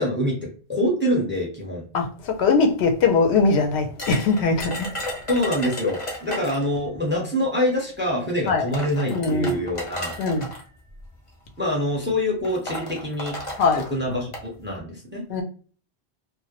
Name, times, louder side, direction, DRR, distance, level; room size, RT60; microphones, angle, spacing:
voice 1, 0.0-1.8 5.3-10.2 11.6-13.4 13.8-15.2, left 1 dB, 15° right, 0.6 m, -25 dB
voice 2, 1.9-4.9 8.5-8.6 9.1-9.5 10.2-10.5 13.6-13.8 15.3-15.4, left 4 dB, 80° left, 0.8 m, -21 dB
sound 1, 4.0-6.7 7.8-7.9 8.5-10.6 11.5-11.8 12.0-12.1 12.4-14.5, left 1 dB, 35° left, 0.7 m, -34 dB
2.1 x 2.1 x 2.9 m
omnidirectional pair, 1.1 m